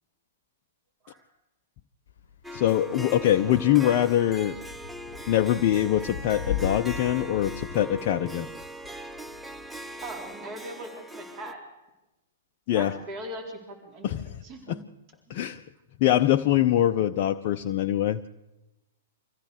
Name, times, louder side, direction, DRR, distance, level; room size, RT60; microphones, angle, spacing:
Thunder / Rain, 2.1-10.3, left 8 dB, 60° left, 1.0 m, -39 dB
Harp, 2.4-11.5, right 1 dB, 5° right, 0.9 m, -40 dB
voice 1, 2.5-4.6 5.3-8.5 12.7-13.0 14.0-14.4 14.7-14.8 15.3-15.6 16.0-18.3, left 12 dB, 40° left, 5 dB, 0.7 m, -23 dB
voice 2, 10.0-11.6 12.7-14.8 15.3-15.5, right 1 dB, 30° right, 2 dB, 4.3 m, -40 dB
25.5 x 15.5 x 6.8 m, 0.99 s
figure-of-eight pair, 105°, 0 cm